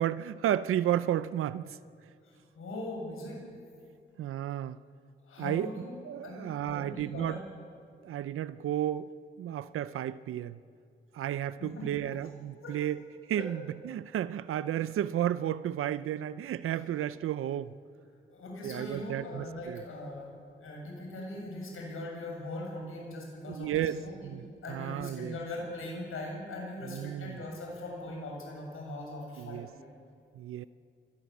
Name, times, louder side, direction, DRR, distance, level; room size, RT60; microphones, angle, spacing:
voice 1, 0.0-1.8 4.2-4.8 5.4-5.7 6.0-7.4 8.0-9.1 9.4-10.6 11.1-13.0 13.3-17.7 18.6-19.8 23.5-25.4 26.8-27.4 29.4-29.7 30.4-30.7, right 11 dB, 90° right, 0.5 m, -32 dB
voice 2, 2.2-3.4 5.3-5.9 6.2-7.4 11.6-12.2 12.6-12.8 13.4-13.5 16.8-16.9 18.3-20.3 20.6-30.0, left 1 dB, 80° left, 7.4 m, -40 dB
23.5 x 18.5 x 8.4 m
cardioid pair, 65°, 21 cm